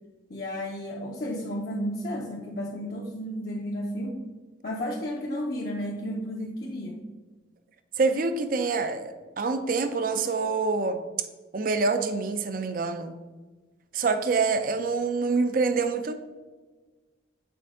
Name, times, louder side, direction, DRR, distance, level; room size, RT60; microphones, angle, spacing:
voice 1, 0.3-4.2 4.6-7.0, equal, 50° left, -3 dB, 0.7 m, -32 dB
voice 2, 8.0-11.0 11.5-13.1 13.9-16.1, right 4 dB, 50° right, 9 dB, 0.5 m, -26 dB
6.9 x 4.4 x 3.7 m, 1.3 s
head